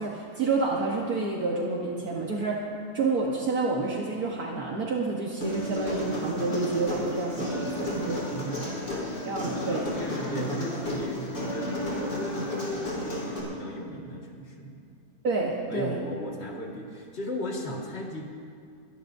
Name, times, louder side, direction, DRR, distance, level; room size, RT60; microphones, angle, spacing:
voice 1, 0.0-2.7 2.9-8.2 9.3-9.9 15.2-16.0, right 3 dB, 65° right, -2 dB, 1.7 m, -29 dB
Human voice, 5.4-13.4, left 1 dB, 85° left, 4.6 m, -32 dB
voice 2, 8.1-9.4 9.7-12.3 12.7-14.8 15.7-18.3, equal, 40° left, -1 dB, 2.2 m, -36 dB
24.0 x 17.5 x 2.7 m, 2.3 s
omnidirectional pair, 1.8 m